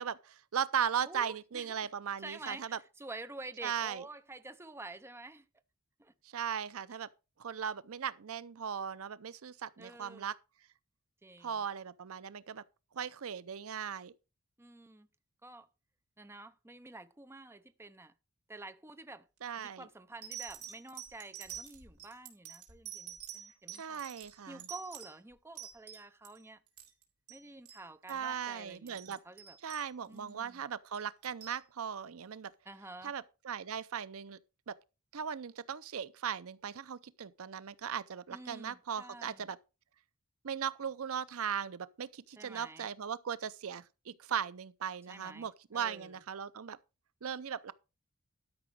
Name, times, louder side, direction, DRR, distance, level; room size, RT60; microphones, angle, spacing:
voice 1, 0.0-2.8 3.6-4.1 6.2-7.1 7.4-10.4 11.4-12.6 12.9-14.1 19.4-19.9 23.7-24.7 28.1-29.2 29.6-32.5 33.0-34.4 34.7-34.8 35.1-39.6 40.4-46.8 47.2-47.7, right 8 dB, 65° right, 0.5 m, -38 dB
voice 2, 1.1-1.9 2.2-5.4 6.0-6.1 9.8-10.3 11.2-11.6 14.6-15.1 15.4-15.7 16.2-18.1 18.5-19.3 19.6-24.0 24.5-26.6 27.3-29.6 30.1-30.6 32.7-33.1 38.3-39.5 42.4-42.9 45.1-46.1, right 2 dB, 10° right, 0.6 m, -49 dB
sound 1, 19.4-19.7 20.2-26.4 26.7-27.0 27.3-27.4 27.7-27.8 28.1-28.3 28.7-30.3 30.9-31.6 32.5-32.6, right 10 dB, 80° right, 3.7 m, -47 dB
12.5 x 5.9 x 4.7 m
head